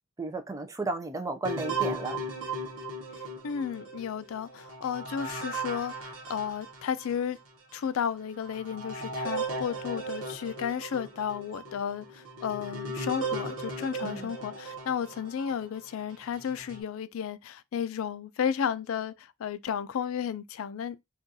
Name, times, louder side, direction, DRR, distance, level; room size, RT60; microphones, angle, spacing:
voice 1, 0.2-2.2 14.0-14.3, right 3 dB, 15° right, 0.4 m, -33 dB
sound 1, 1.4-7.2 7.7-7.8 8.4-15.6 16.2-16.8, right 2 dB, 75° right, 1.0 m, -37 dB
voice 2, 3.1-7.4 7.7-21.0, left 8 dB, 65° left, 0.3 m, -33 dB
3.7 x 2.3 x 2.7 m
head